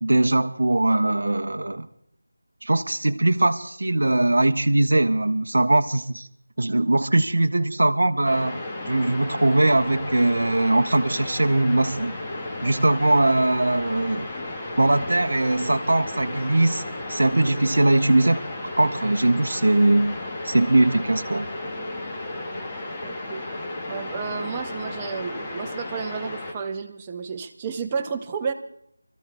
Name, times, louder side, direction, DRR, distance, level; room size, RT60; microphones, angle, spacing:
voice 1, 0.0-1.9 2.6-6.3 6.6-8.6 8.9-12.1 12.6-14.3 14.8-16.8 17.1-18.4 18.8-20.1 20.4-21.5, right 2 dB, 65° right, 8 dB, 0.6 m, -21 dB
sound 1, 8.2-26.5, left 2 dB, 15° left, 1.0 m, -34 dB
voice 2, 23.0-23.4 23.9-28.5, right 5 dB, 15° right, 4 dB, 0.6 m, -31 dB
27.0 x 13.5 x 2.3 m, 0.72 s
figure-of-eight pair, 165°, 0 cm